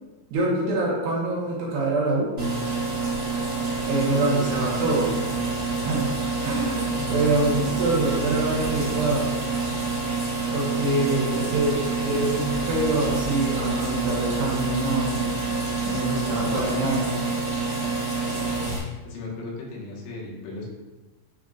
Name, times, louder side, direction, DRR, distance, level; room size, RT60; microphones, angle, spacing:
voice 1, 0.3-2.3 3.8-5.1 5.8-6.1 6.4-9.4 10.5-15.2 15.9-17.2, right 2 dB, 70° right, -4 dB, 2.9 m, -25 dB
sound 1, 2.4-18.8, right 3 dB, 40° right, 1.4 m, -27 dB
voice 2, 4.5-5.0 7.0-7.3 18.4-18.5 19.0-20.7, left 3 dB, 90° left, -4 dB, 4.0 m, -37 dB
10.5 x 4.0 x 2.4 m, 1.1 s
omnidirectional pair, 5.5 m